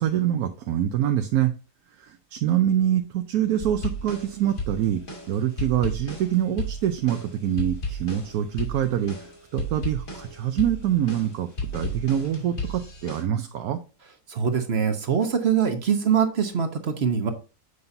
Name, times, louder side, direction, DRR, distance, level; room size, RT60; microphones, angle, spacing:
voice 1, 0.0-1.5 2.0-5.0 5.3-13.8, right 11 dB, 75° right, 6 dB, 1.1 m, -25 dB
sound 1, 3.6-13.2, equal, 60° left, 2.5 m, -34 dB
voice 2, 14.3-17.3, right 7 dB, 50° right, 7 dB, 1.0 m, -23 dB
8.0 x 5.5 x 2.7 m, 0.34 s
omnidirectional pair, 1.6 m